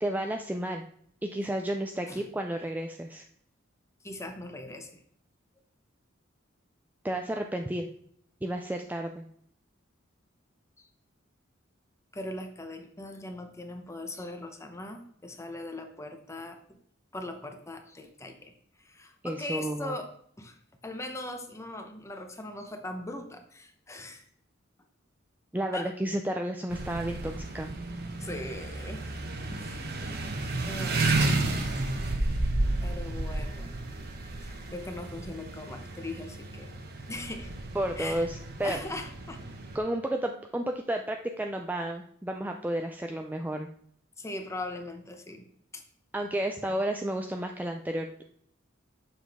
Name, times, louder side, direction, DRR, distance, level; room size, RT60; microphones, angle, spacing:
voice 1, 0.0-0.8 1.2-3.2 7.0-7.9 8.4-9.3 19.2-20.0 25.5-27.7 32.4-32.5 37.7-38.8 39.7-43.7 46.1-48.2, right 1 dB, 10° right, 4 dB, 0.4 m, -32 dB
voice 2, 4.0-5.0 10.8-10.9 12.1-16.8 17.1-18.5 18.8-20.1 20.4-20.6 20.8-24.2 25.7-25.9 28.2-29.1 29.6-29.8 30.4-31.5 32.8-33.7 34.4-36.7 37.1-37.5 38.0-38.3 38.6-39.4 44.2-45.5 45.7-45.8, left 2 dB, 15° left, 5 dB, 0.8 m, -40 dB
sound 1, 26.7-39.8, right 2 dB, 55° right, 1.0 m, -32 dB
7.1 x 5.8 x 3.5 m, 0.66 s
head